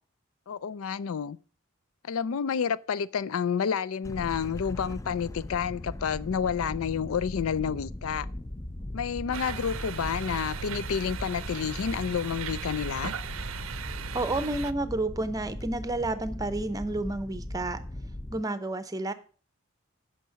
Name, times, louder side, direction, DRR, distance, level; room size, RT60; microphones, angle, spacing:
voice 1, 0.5-1.4 2.0-8.3 8.9-13.1, left 7 dB, 80° left, 0.4 m, -30 dB
sound 1, 4.0-18.4, left 1 dB, 15° left, 0.4 m, -39 dB
sound 2, 9.3-14.7, right 6 dB, 70° right, 0.6 m, -37 dB
voice 2, 14.1-17.8 18.3-19.1, right 2 dB, 15° right, 0.7 m, -30 dB
9.1 x 5.8 x 5.8 m
head